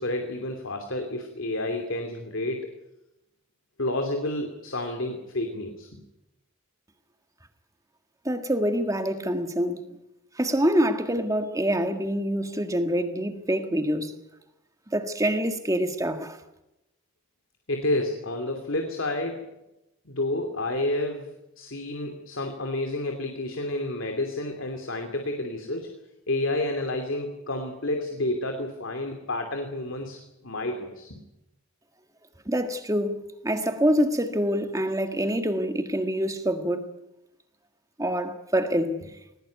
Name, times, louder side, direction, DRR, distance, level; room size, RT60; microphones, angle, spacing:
voice 1, 0.0-2.7 3.8-6.0 17.7-19.4 20.0-25.9 26.3-31.2, left 1 dB, 65° left, 2.7 m, -30 dB
voice 2, 8.3-9.9 10.4-14.1 14.9-16.4 32.5-36.9 38.0-39.0, equal, 15° right, 1.7 m, -26 dB
20.0 x 19.5 x 9.3 m
head